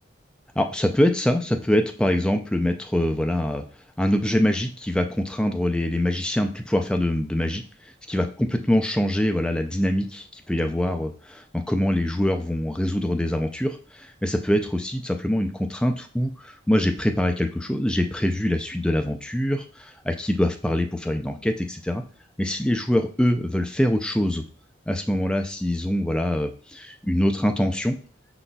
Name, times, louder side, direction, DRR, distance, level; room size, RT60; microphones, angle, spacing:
voice 1, 0.6-3.6 4.0-7.6 8.1-22.0 22.4-24.4 24.9-28.0, left 1 dB, 5° left, 5 dB, 0.3 m, -24 dB
5.0 x 4.0 x 2.2 m, 0.41 s
head